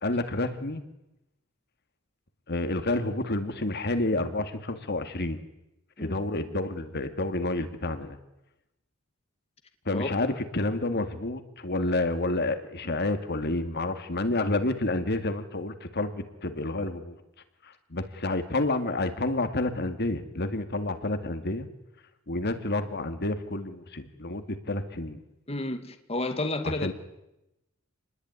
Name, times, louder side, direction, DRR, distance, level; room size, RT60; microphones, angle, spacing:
voice 1, 0.0-0.8 2.5-5.4 6.0-8.2 9.9-17.2 17.6-21.7 22.3-25.2 26.8-26.9, left 2 dB, 50° left, 2.3 m, -29 dB
voice 2, 9.9-10.4 25.5-26.9, left 2 dB, 30° left, 2.2 m, -31 dB
28.5 x 20.5 x 9.7 m
head